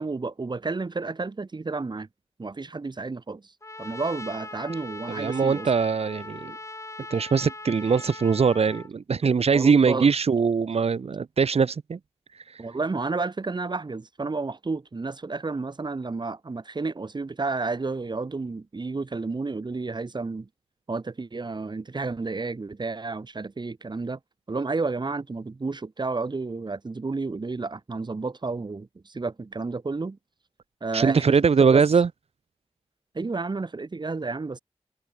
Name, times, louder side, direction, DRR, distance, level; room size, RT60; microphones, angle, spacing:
voice 1, 0.0-2.1 2.4-3.5 3.8-5.7 9.5-10.1 12.6-20.5 20.9-24.2 24.5-30.2 30.8-31.8 33.1-34.6, right 3 dB, 45° right, 4.3 m, -31 dB
Trumpet, 3.6-8.9, left 2 dB, 30° left, 6.9 m, -40 dB
voice 2, 5.1-6.6 7.1-12.0 12.3-12.6 30.9-32.1, right 5 dB, 80° right, 1.8 m, -22 dB
wide cardioid pair, 105°, 10 cm